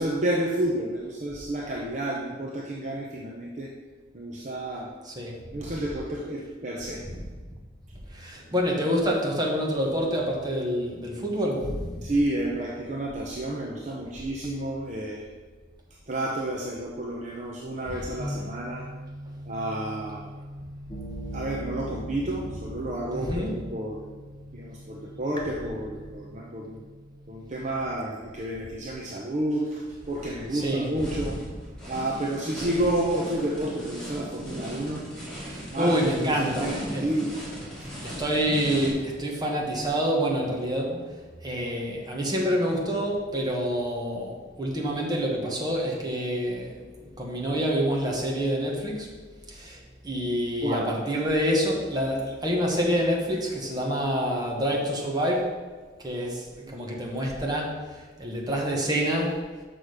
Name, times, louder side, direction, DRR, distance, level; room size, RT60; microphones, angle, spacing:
voice 1, 0.0-3.7 4.1-4.9 5.5-7.0 12.0-15.4 16.1-18.9 19.4-20.3 21.3-24.0 24.5-26.8 27.3-31.4 31.9-35.1 35.7-37.3 37.8-37.9 50.6-50.9 56.7-56.8, right 1 dB, 40° right, -2 dB, 0.8 m, -30 dB
voice 2, 5.0-5.4 7.0-7.2 8.1-12.1 23.1-23.6 30.5-31.3 35.5-37.1 38.0-41.1 41.4-49.1 49.5-55.6 56.0-59.4, equal, 20° right, -2 dB, 1.3 m, -27 dB
sound 1, 18.2-27.9, equal, 25° left, 1.2 m, -40 dB
sound 2, 29.8-38.9, equal, 5° left, 2.7 m, -38 dB
6.5 x 6.1 x 5.0 m, 1.4 s
head